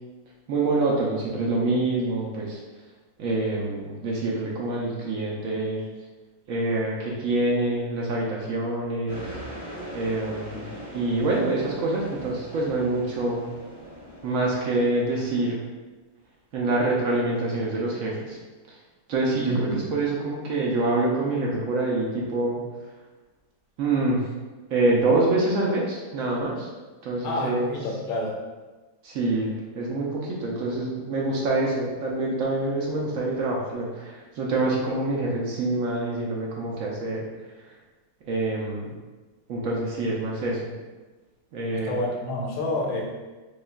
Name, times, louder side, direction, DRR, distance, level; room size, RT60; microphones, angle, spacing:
voice 1, 0.5-2.6 3.2-5.8 6.5-9.2 9.9-10.7 10.9-13.4 14.2-15.6 16.5-18.4 19.1-22.6 23.8-24.2 24.7-26.7 27.0-27.6 29.0-37.3 38.2-38.9 39.5-40.7 41.5-41.9, right 2 dB, 75° right, -3 dB, 0.7 m, -26 dB
sound 1, 9.1-15.6, right 1 dB, 10° right, 0.9 m, -41 dB
voice 2, 19.5-19.9 27.2-28.4 41.8-43.0, left 1 dB, 60° left, -2 dB, 0.9 m, -28 dB
5.0 x 2.3 x 2.3 m, 1.2 s
omnidirectional pair, 2.0 m